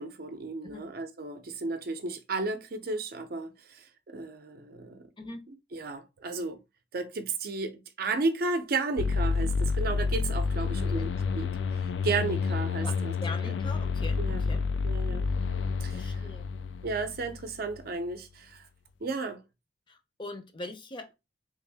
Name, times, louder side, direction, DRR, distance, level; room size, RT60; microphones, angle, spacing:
voice 1, 0.0-5.0 5.7-6.6 6.9-11.5 12.0-13.1 13.4-13.5 14.2-14.5 14.8-15.3 15.8-16.2 16.8-18.7 19.0-19.4, right 3 dB, 55° right, 0.6 m, -33 dB
sound 1, 9.0-17.8, left 5 dB, 80° left, 0.4 m, -29 dB
voice 2, 13.2-14.6 15.9-16.5 19.9-21.1, left 2 dB, 25° left, 0.6 m, -41 dB
3.4 x 2.6 x 3.4 m
head